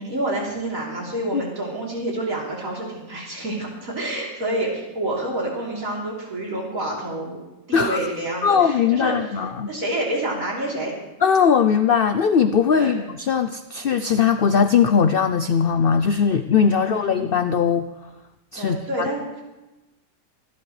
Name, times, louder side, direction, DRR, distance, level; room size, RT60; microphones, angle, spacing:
voice 1, 0.0-7.4 7.7-10.9 12.7-13.0 16.7-17.2 18.6-19.4, right 1 dB, 60° right, -3 dB, 3.9 m, -28 dB
voice 2, 8.4-9.7 11.2-17.9 18.5-18.8, left 6 dB, 65° left, 10 dB, 0.5 m, -19 dB
25.0 x 11.5 x 3.3 m, 1.0 s
omnidirectional pair, 1.6 m